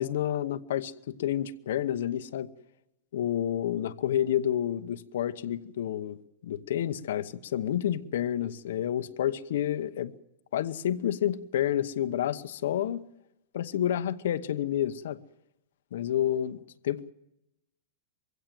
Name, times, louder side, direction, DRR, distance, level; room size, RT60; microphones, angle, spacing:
voice 1, 0.0-2.5 3.1-6.2 6.4-10.1 10.5-13.0 13.5-15.2 15.9-16.6 16.8-17.1, left 11 dB, 70° left, 1.0 m, -29 dB
22.5 x 16.0 x 7.6 m
supercardioid pair, 165°, 0 cm